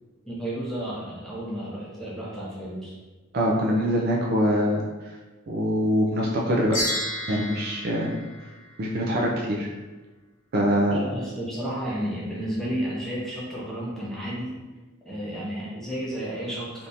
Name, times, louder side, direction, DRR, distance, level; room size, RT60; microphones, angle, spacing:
voice 1, 0.2-2.9 10.9-14.6 15.0-16.9, equal, ahead, -7 dB, 0.7 m, -32 dB
voice 2, 3.3-4.8 5.5-6.8 7.3-8.1 8.8-9.7 10.5-11.0, equal, 45° right, -2 dB, 0.4 m, -23 dB
sound 1, 6.7-9.2, left 1 dB, 40° left, 0.6 m, -32 dB
3.4 x 2.6 x 2.8 m, 1.2 s
head